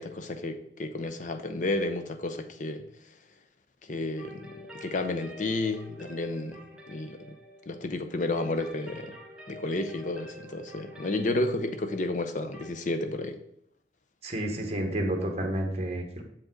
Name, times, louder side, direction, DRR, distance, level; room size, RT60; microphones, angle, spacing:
voice 1, 0.0-2.9 3.8-7.3 7.7-9.2 9.5-13.4, left 2 dB, 45° left, 8 dB, 0.6 m, -32 dB
sound 1, 4.2-12.7, equal, 5° right, 1.0 m, -48 dB
voice 2, 14.2-16.2, right 1 dB, 35° right, 3 dB, 1.1 m, -30 dB
7.5 x 5.1 x 3.8 m, 0.75 s
head